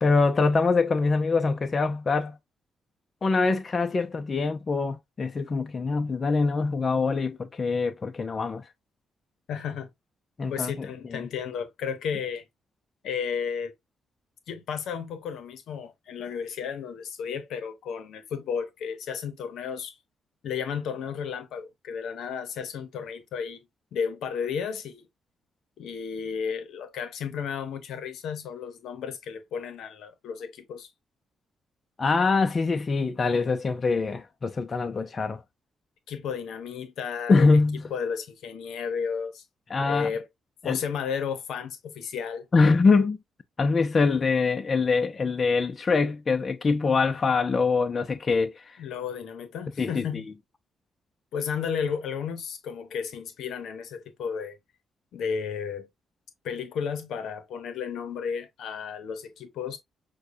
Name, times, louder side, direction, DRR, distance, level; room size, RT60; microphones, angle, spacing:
voice 1, 0.0-2.4 3.2-8.6 10.4-11.3 32.0-35.4 37.3-37.8 39.7-40.1 40.6-40.8 42.5-43.2 43.6-48.8 49.8-50.2, left 4 dB, 40° left, 0.6 m, -24 dB
voice 2, 9.5-9.9 10.5-12.4 13.0-13.7 14.5-19.9 20.4-23.6 23.9-25.1 25.8-30.9 36.1-37.6 37.9-39.4 39.8-40.3 40.6-42.5 48.8-50.3 51.3-54.6 55.1-55.9 56.4-59.8, left 6 dB, 75° left, 0.9 m, -33 dB
6.2 x 2.3 x 2.6 m
supercardioid pair, 55°, 0 cm